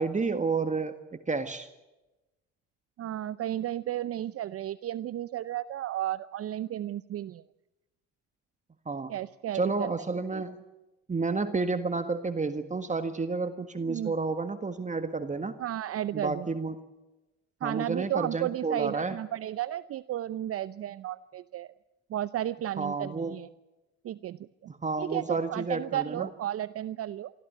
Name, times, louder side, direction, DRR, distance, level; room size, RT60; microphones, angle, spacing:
voice 1, 0.0-1.7 8.9-9.2 9.5-10.6 11.1-15.5 16.1-16.9 17.6-19.2 22.8-23.4 24.7-26.3, right 4 dB, 20° right, 8 dB, 1.7 m, -30 dB
voice 2, 3.0-7.4 9.1-9.9 10.3-10.4 13.9-14.1 15.6-16.5 17.6-21.7 22.1-23.5 24.0-24.4 25.0-27.3, right 12 dB, 45° right, 16 dB, 0.7 m, -33 dB
24.5 x 15.0 x 9.4 m, 1.0 s
hypercardioid pair, 65°, 33 cm